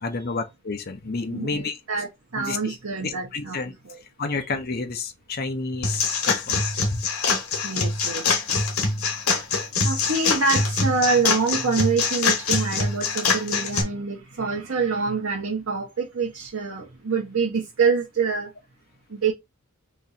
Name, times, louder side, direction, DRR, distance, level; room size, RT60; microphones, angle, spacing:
voice 1, 0.0-1.8 2.4-2.8 3.0-3.7 4.2-6.6, left 3 dB, 45° left, 0.7 m, -30 dB
voice 2, 1.3-3.6 3.8-4.0 7.6-8.2 9.8-18.5 19.1-19.3, right 4 dB, 65° right, 0.9 m, -26 dB
sound 1, 5.8-13.8, left 4 dB, 80° left, 1.1 m, -24 dB
3.0 x 2.6 x 4.0 m
head